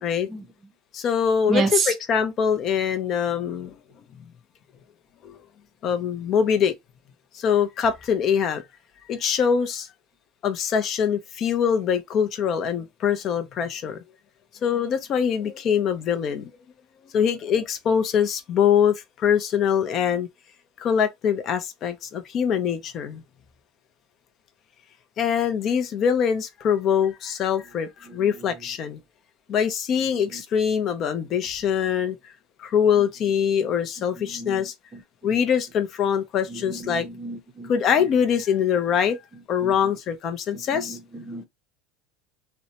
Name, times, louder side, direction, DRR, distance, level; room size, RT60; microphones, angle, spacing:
voice 1, 0.9-3.7 5.2-5.4 5.8-6.7 7.3-8.6 9.1-9.9 10.4-14.0 14.6-16.5 17.1-20.3 20.8-23.2 25.2-29.0 29.5-32.2 32.6-34.7 35.2-37.1 37.7-39.2 39.5-41.0, left 7 dB, 35° left, 0.5 m, -23 dB
voice 2, 1.5-1.9 28.1-28.3 30.1-30.4 34.2-35.4 36.5-38.1 39.6-39.9 40.5-41.5, right 4 dB, 25° right, 0.6 m, -31 dB
2.7 x 2.1 x 2.7 m
supercardioid pair, 145°, 0 cm